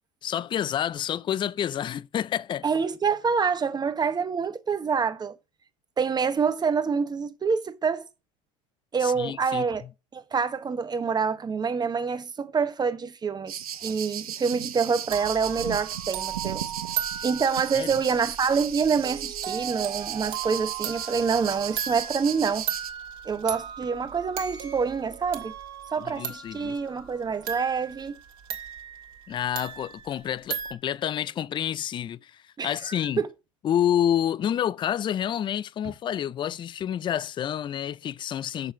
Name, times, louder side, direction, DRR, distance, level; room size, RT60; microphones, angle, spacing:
voice 1, 0.2-2.6 9.0-9.7 17.7-17.9 26.0-26.7 29.3-33.2 33.6-38.7, left 10 dB, 25° left, 0.4 m, -28 dB
voice 2, 2.6-5.4 6.0-8.1 8.9-9.8 10.1-13.5 13.8-16.7 17.0-22.7 23.2-25.5 25.9-28.1 32.6-33.3, right 5 dB, 25° right, 1.0 m, -26 dB
sound 1, 13.5-22.9, right 10 dB, 90° right, 0.8 m, -35 dB
sound 2, 15.1-30.7, right 9 dB, 60° right, 2.3 m, -37 dB
6.7 x 5.5 x 6.1 m
hypercardioid pair, 85°, 18 cm